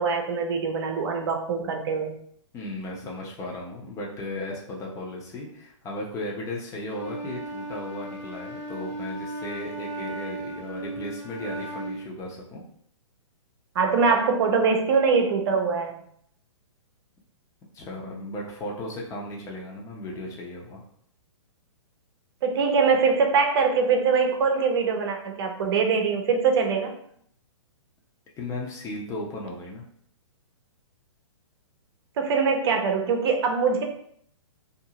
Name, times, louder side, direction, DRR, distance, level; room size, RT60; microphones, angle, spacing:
voice 1, 0.0-2.2 13.7-16.0 22.4-26.9 32.2-33.8, right 5 dB, 50° right, 4 dB, 0.7 m, -23 dB
voice 2, 2.5-12.6 17.7-20.8 28.4-29.8, left 1 dB, 20° left, -2 dB, 0.7 m, -36 dB
Wind instrument woodwind instrument, 6.9-12.1, right 2 dB, 15° right, 0.9 m, -36 dB
2.6 x 2.5 x 2.8 m, 0.66 s
hypercardioid pair, 125°, 16 cm